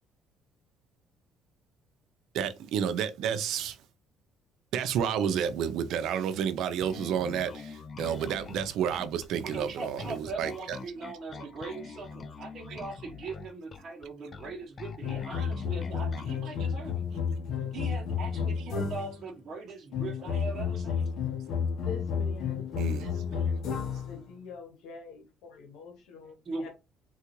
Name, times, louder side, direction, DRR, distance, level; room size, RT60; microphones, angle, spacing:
voice 1, 2.3-3.8 4.7-10.8 22.8-23.1, right 8 dB, 70° right, 0.4 m, -30 dB
Bass guitar, 6.8-16.4, left 5 dB, 35° left, 0.4 m, -44 dB
voice 2, 9.4-17.0 17.7-21.1 26.4-26.7, right 3 dB, 40° right, 0.8 m, -40 dB
sound 1, 15.0-19.3 19.9-24.2, left 6 dB, 60° left, 0.7 m, -31 dB
voice 3, 21.8-23.7 24.0-26.7, left 5 dB, 90° left, 0.9 m, -46 dB
3.7 x 2.3 x 2.9 m
cardioid pair, 125°, 0 cm